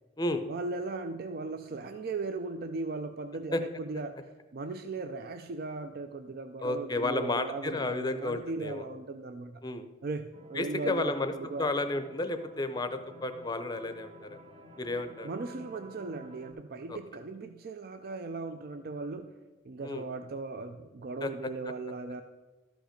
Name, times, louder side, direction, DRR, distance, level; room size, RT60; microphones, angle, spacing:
voice 1, 0.5-9.6 10.0-11.7 15.2-19.3 19.6-22.2, right 3 dB, 50° right, 8 dB, 0.4 m, -38 dB
voice 2, 6.6-8.8 9.6-9.9 10.5-11.3 11.6-14.4 14.8-15.3 16.9-17.0 19.8-20.0 21.2-21.3 21.7-21.8, left 2 dB, 20° left, 9 dB, 0.6 m, -32 dB
sound 1, 10.3-16.5, right 1 dB, 35° right, 0.9 m, -52 dB
13.0 x 5.2 x 5.1 m, 1.3 s
head